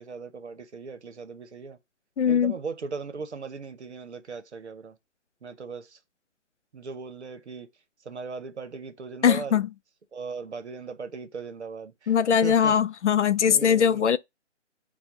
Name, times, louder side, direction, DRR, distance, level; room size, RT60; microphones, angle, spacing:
voice 1, 0.0-1.8 2.2-4.9 5.4-6.0 6.7-7.7 8.0-9.6 10.1-12.1 12.4-12.7 13.5-14.0, right 5 dB, 65° right, 0.9 m, -38 dB
voice 2, 2.2-2.6 9.2-9.7 12.1-14.2, left 8 dB, 70° left, 0.5 m, -21 dB
4.3 x 2.3 x 4.6 m
hypercardioid pair, 165°, 36 cm